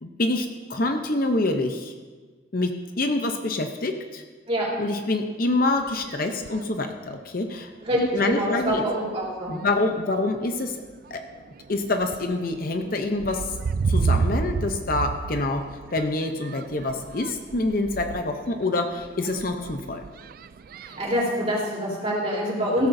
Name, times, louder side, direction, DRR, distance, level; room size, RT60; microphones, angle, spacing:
voice 1, 0.0-1.9 2.5-4.2 4.8-7.7 8.1-8.8 9.5-10.8 11.1-11.2 11.7-13.4 13.9-15.7 15.9-20.0, left 2 dB, 45° left, 5 dB, 0.7 m, -26 dB
sound 1, 5.7-6.7 7.5-7.6 8.1-8.3 8.6-9.2 9.9-10.1 10.6-21.2, right 4 dB, 45° right, 0.3 m, -32 dB
voice 2, 7.8-9.5 20.8-22.9, equal, 30° right, -5 dB, 3.7 m, -25 dB
16.5 x 13.5 x 2.7 m, 1.4 s
head